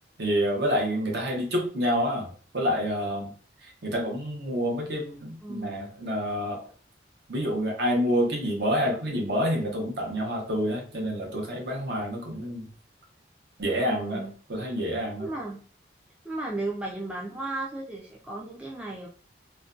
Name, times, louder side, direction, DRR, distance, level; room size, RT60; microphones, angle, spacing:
voice 1, 0.2-2.3 2.5-3.3 3.8-6.6 7.3-12.7 13.6-14.2 14.5-15.2, equal, 60° right, -1 dB, 0.7 m, -28 dB
voice 2, 5.4-5.9 13.8-14.3 15.2-15.6 16.2-19.1, right 2 dB, 5° right, -3 dB, 0.3 m, -35 dB
2.5 x 2.1 x 2.4 m, 0.41 s
head